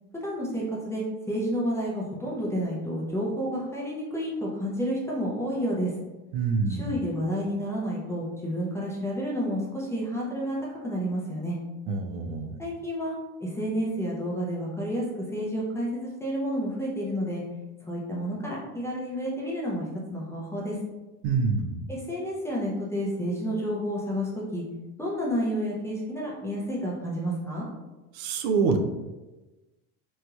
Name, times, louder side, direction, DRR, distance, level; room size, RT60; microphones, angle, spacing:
voice 1, 0.1-5.9 6.7-10.6 10.8-11.6 12.6-13.2 13.4-15.0 15.3-17.4 17.9-20.8 21.9-24.6 25.0-27.7, equal, 5° left, -5 dB, 0.4 m, -30 dB
voice 2, 6.3-6.9 11.9-12.5 21.2-21.8 28.1-28.8, right 5 dB, 75° right, 5 dB, 0.5 m, -26 dB
3.1 x 2.7 x 2.3 m, 1.1 s
supercardioid pair, 130°, 41 cm